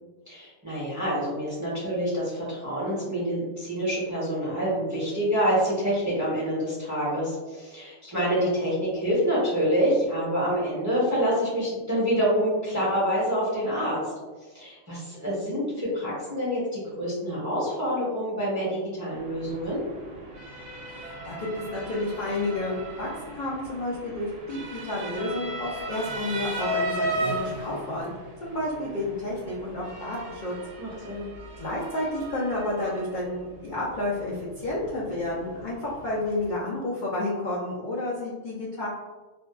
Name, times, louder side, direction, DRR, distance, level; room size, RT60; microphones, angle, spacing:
voice 1, 0.3-14.0 14.5-19.8 30.8-31.3, equal, 20° right, -8 dB, 0.6 m, -27 dB
Motor vehicle (road) / Siren, 19.1-36.5, right 1 dB, 85° right, 0.9 m, -37 dB
voice 2, 20.8-28.1 28.4-30.6 30.9-31.3 31.6-38.9, left 2 dB, 60° left, -6 dB, 0.5 m, -31 dB
2.6 x 2.2 x 2.3 m, 1.2 s
omnidirectional pair, 1.3 m